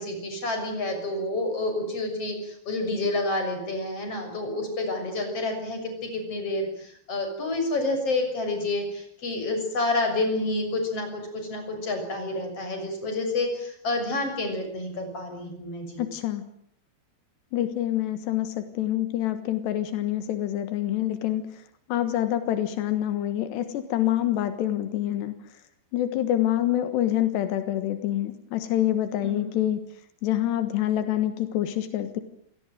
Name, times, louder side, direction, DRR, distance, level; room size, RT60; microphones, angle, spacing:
voice 1, 0.0-16.0 29.2-29.5, left 2 dB, 35° left, 5 dB, 7.5 m, -29 dB
voice 2, 16.0-16.4 17.5-21.5 21.9-25.3 25.9-29.8 30.2-32.2, left 12 dB, 90° left, 10 dB, 3.7 m, -26 dB
28.0 x 17.5 x 9.2 m, 0.69 s
omnidirectional pair, 4.7 m